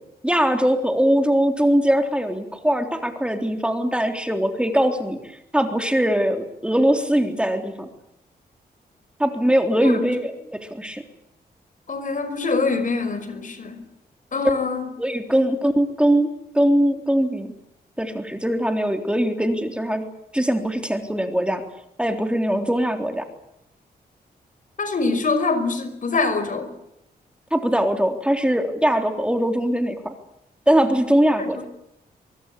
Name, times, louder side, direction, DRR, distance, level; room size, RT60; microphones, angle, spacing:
voice 1, 0.2-5.2 5.5-7.9 9.2-11.0 15.0-16.3 16.5-17.5 18.0-20.0 20.3-21.6 22.0-23.3 27.5-30.1 30.7-31.6, equal, 5° right, 5 dB, 3.7 m, -21 dB
voice 2, 11.9-13.8 14.3-14.9 24.8-26.7 31.4-31.5, left 3 dB, 50° left, 11 dB, 5.4 m, -24 dB
23.5 x 23.5 x 8.5 m, 0.82 s
cardioid pair, 85°, 17 cm